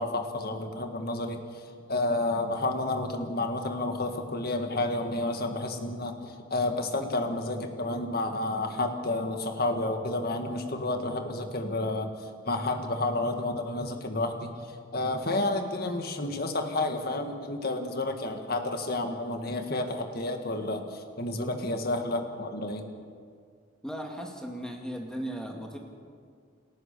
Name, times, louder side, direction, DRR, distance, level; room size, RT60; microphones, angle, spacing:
voice 1, 0.0-1.6 1.9-12.1 12.5-22.9, left 2 dB, 50° left, 5 dB, 1.9 m, -30 dB
voice 2, 23.8-25.8, equal, 5° left, 1 dB, 2.3 m, -36 dB
29.0 x 14.0 x 6.9 m, 2.1 s
head